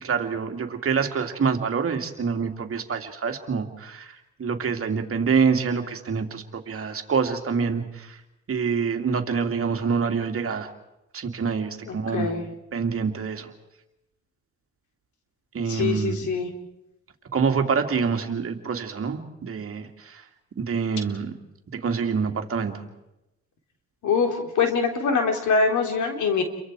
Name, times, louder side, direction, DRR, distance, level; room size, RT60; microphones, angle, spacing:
voice 1, 0.0-8.2 8.5-10.7 11.1-12.3 12.7-13.5 15.5-16.2 17.3-20.2 20.6-21.3 21.7-22.8, right 5 dB, 45° right, 5 dB, 2.6 m, -26 dB
voice 2, 11.8-12.4 15.7-16.5 24.0-26.4, left 5 dB, 75° left, 4 dB, 3.8 m, -24 dB
29.5 x 23.5 x 4.8 m, 0.92 s
cardioid pair, 90°, 30 cm